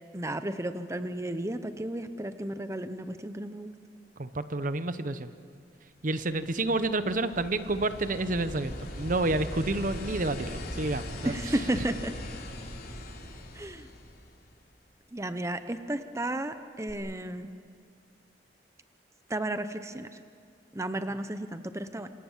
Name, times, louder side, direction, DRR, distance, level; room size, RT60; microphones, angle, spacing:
voice 1, 0.1-3.7 11.2-12.1 13.5-13.9 15.1-17.5 19.3-20.2 20.7-22.1, right 1 dB, 15° right, 10 dB, 0.8 m, -33 dB
voice 2, 4.2-5.3 6.0-11.4, right 2 dB, 50° right, 12 dB, 0.9 m, -29 dB
sound 1, 6.3-14.7 16.9-17.0, left 1 dB, 60° left, 3.3 m, -40 dB
27.5 x 27.0 x 7.4 m, 2.2 s
head